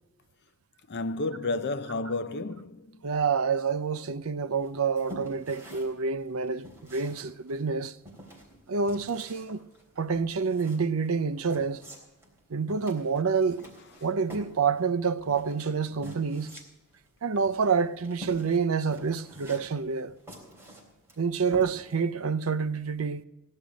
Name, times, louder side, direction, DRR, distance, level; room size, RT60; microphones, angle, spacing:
voice 1, 0.9-3.0, left 2 dB, 50° left, 0.6 m, -31 dB
voice 2, 3.0-7.9 8.7-9.6 10.0-11.8 12.5-13.6 14.0-16.6 17.2-20.1 21.2-23.2, right 5 dB, 70° right, 0.6 m, -28 dB
sound 1, 4.6-22.1, equal, 10° right, 3.6 m, -48 dB
17.0 x 11.0 x 5.1 m
head